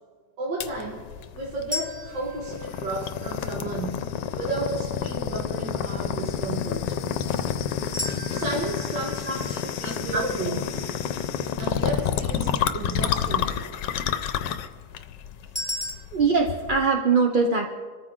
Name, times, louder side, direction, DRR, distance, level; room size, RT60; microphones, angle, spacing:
voice 1, 0.4-1.0 1.3-4.0 4.3-7.0 8.3-10.7 11.6-13.6, right 2 dB, 85° right, -2 dB, 2.2 m, -33 dB
sound 1, 0.6-16.9, left 9 dB, 75° left, 1.4 m, -29 dB
sound 2, 1.7-3.8 7.9-11.0 15.6-15.9, left 1 dB, 5° right, 2.5 m, -36 dB
voice 2, 9.3-10.2 16.1-17.7, right 4 dB, 40° right, 3 dB, 0.8 m, -23 dB
26.0 x 14.0 x 3.8 m, 1.5 s
omnidirectional pair, 1.9 m